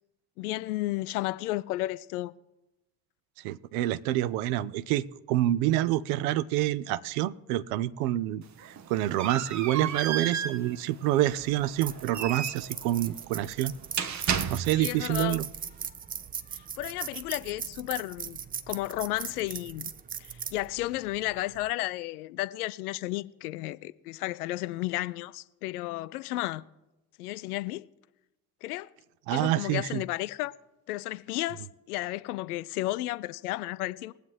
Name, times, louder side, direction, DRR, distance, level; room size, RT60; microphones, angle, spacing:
voice 1, 0.4-2.3 14.7-15.4 16.5-18.4 18.7-19.9 20.2-26.6 27.2-27.9 28.6-28.9 29.3-30.5 30.9-34.1, left 17 dB, 70° left, 0.5 m, -33 dB
voice 2, 3.4-13.7 14.5-15.4 29.3-30.0, right 14 dB, 65° right, 0.6 m, -27 dB
sound 1, 8.4-15.0, right 7 dB, 35° right, 0.8 m, -34 dB
sound 2, 11.3-21.7, right 7 dB, 20° right, 0.4 m, -40 dB
20.5 x 8.0 x 3.2 m
figure-of-eight pair, 45°, 47 cm